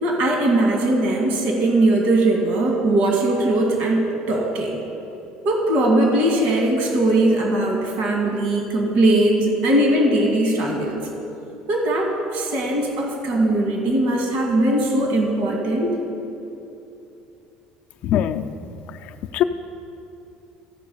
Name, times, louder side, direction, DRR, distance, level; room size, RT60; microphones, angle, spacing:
voice 1, 0.0-4.8 5.4-11.0 11.7-15.9, right 1 dB, 75° right, 0 dB, 1.8 m, -20 dB
voice 2, 18.0-18.5 19.3-19.4, left 11 dB, 55° left, 7 dB, 0.4 m, -20 dB
14.5 x 4.8 x 5.4 m, 2.8 s
cardioid pair, 135°, 3 cm